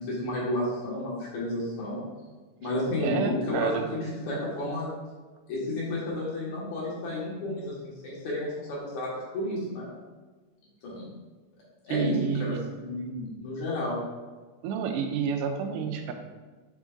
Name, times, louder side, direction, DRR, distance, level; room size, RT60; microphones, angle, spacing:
voice 1, 0.0-2.0 2.6-4.9 5.5-9.9 10.8-11.1 11.8-14.0, left 1 dB, 65° left, -5 dB, 3.0 m, -31 dB
voice 2, 3.0-3.8 11.9-12.6 14.6-16.1, right 6 dB, 85° right, 5 dB, 2.2 m, -29 dB
7.3 x 6.4 x 2.6 m, 1.3 s
omnidirectional pair, 3.7 m